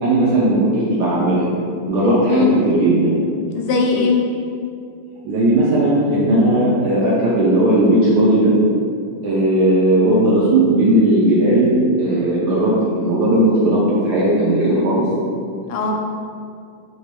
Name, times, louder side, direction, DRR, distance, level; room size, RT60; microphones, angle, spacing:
voice 1, 0.0-1.5 1.9-3.2 5.2-8.5 9.2-11.7 12.0-15.1, right 1 dB, 75° right, -7 dB, 0.9 m, -16 dB
voice 2, 2.3-2.6 3.5-4.1 15.7-15.9, left 4 dB, 90° left, 0 dB, 1.4 m, -18 dB
4.1 x 2.2 x 3.0 m, 2.4 s
omnidirectional pair, 2.3 m